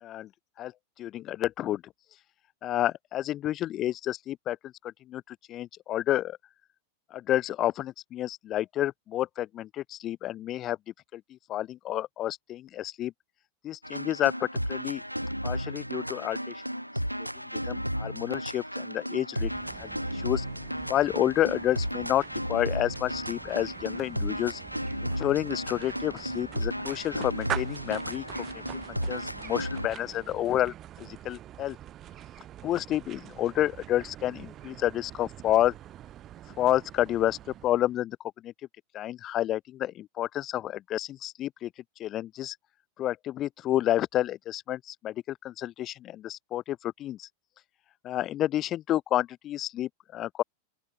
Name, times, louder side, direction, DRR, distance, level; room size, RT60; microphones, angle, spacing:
voice 1, 1.0-1.9 2.6-6.4 7.1-10.8 11.1-13.1 13.6-15.0 15.4-16.6 17.2-19.5 19.8-20.5 20.9-22.2 22.5-24.6 25.0-28.5 29.1-31.8 32.6-35.7 36.5-38.2 38.4-38.5 38.9-41.7 42.0-42.6 43.0-47.3 48.0-50.4, left 13 dB, 30° left, 0.3 m, -30 dB
sound 1, 13.8-30.0, equal, 90° right, 0.5 m, -34 dB
sound 2, 19.4-38.0, right 12 dB, 30° right, 1.8 m, -44 dB
open air
figure-of-eight pair, 90°, 0 cm